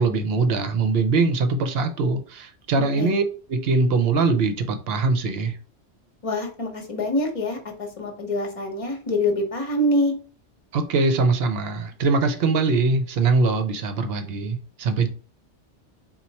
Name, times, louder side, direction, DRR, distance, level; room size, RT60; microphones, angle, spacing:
voice 1, 0.0-3.2 3.5-5.6 10.7-15.1, right 3 dB, 65° right, 0.8 m, -22 dB
voice 2, 2.8-3.2 6.2-10.1, left 1 dB, 30° left, 0.9 m, -25 dB
4.4 x 2.3 x 4.0 m
omnidirectional pair, 1.2 m